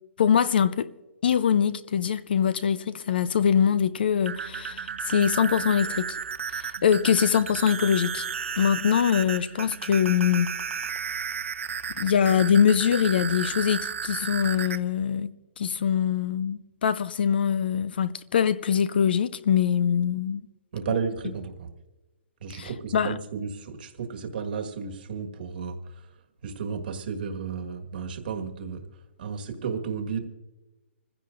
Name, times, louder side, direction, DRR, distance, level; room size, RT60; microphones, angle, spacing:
voice 1, 0.2-0.9 1.2-6.2 6.5-8.3 8.6-10.5 12.0-15.3 15.6-20.5 22.5-23.1, left 8 dB, 45° left, 0.5 m, -23 dB
sound 1, 4.1-14.8, right 7 dB, 70° right, 1.0 m, -33 dB
voice 2, 20.7-21.7 22.4-26.1 26.4-28.9 29.2-30.2, right 6 dB, 45° right, 1.5 m, -33 dB
26.0 x 15.5 x 2.5 m
hypercardioid pair, 175°, 7 cm